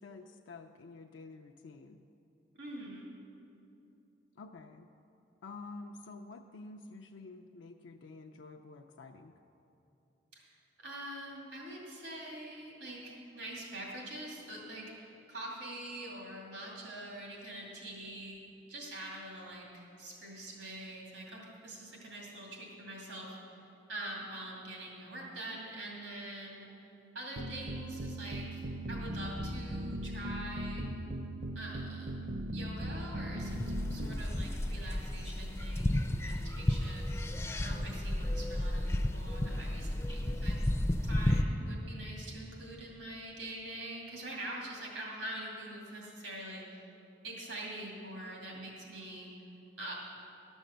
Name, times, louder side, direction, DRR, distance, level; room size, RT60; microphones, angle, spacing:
voice 1, 0.0-2.0 4.4-4.9 5.4-9.3, left 3 dB, 90° left, 3 dB, 0.4 m, -49 dB
voice 2, 2.6-3.1 10.3-10.5 10.8-18.4 18.7-23.6 23.9-30.9 31.5-37.3 37.6-40.6 41.0-46.9 47.2-49.3 49.8-49.9, right 1 dB, 85° right, -2 dB, 2.5 m, -44 dB
sound 1, 27.4-34.2, right 1 dB, 45° right, 0.6 m, -39 dB
sound 2, 33.4-41.4, left 1 dB, 15° left, 0.4 m, -33 dB
12.5 x 6.3 x 6.7 m, 2.8 s
head